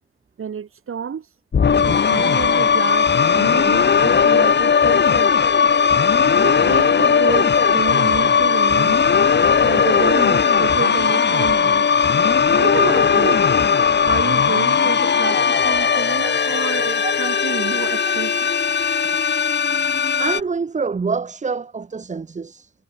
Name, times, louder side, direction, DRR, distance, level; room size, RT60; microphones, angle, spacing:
voice 1, 0.4-1.3 1.8-5.3 6.2-9.0 9.6-11.9 12.6-13.4 14.0-18.5, right 7 dB, 45° right, 2.4 m, -29 dB
sound 1, 1.5-20.4, left 6 dB, 35° left, 1.4 m, -17 dB
voice 2, 17.0-17.4 20.2-22.7, right 5 dB, 25° right, 1.0 m, -26 dB
wide cardioid pair, 155°, 30 cm